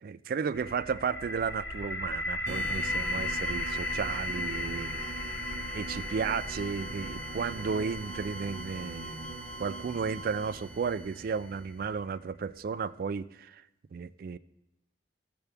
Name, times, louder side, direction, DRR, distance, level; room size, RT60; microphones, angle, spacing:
voice 1, 0.0-5.1 5.7-13.6 13.9-14.4, right 5 dB, 55° right, 0.3 m, -34 dB
sound 1, 0.5-12.4, left 1 dB, 75° left, 1.1 m, -37 dB
sound 2, 2.5-11.8, right 3 dB, 80° right, 0.7 m, -43 dB
sound 3, 2.9-10.6, equal, 20° left, 0.9 m, -47 dB
14.5 x 6.9 x 3.4 m
head